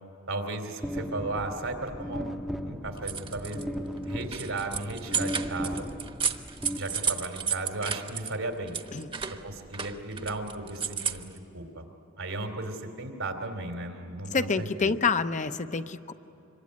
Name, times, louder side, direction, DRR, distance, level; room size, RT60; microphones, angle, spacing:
voice 1, 0.3-2.3 2.6-5.9 6.8-8.8 9.4-11.8 12.2-14.9, right 2 dB, 85° right, 5 dB, 3.2 m, -35 dB
sound 1, 0.8-7.4, equal, ahead, 0.8 m, -36 dB
sound 2, 2.9-3.6 4.0-8.4 8.7-11.4, right 6 dB, 25° right, 1.0 m, -33 dB
voice 2, 14.3-16.1, left 5 dB, 40° left, 10 dB, 0.7 m, -27 dB
26.0 x 23.5 x 9.7 m, 3.0 s
head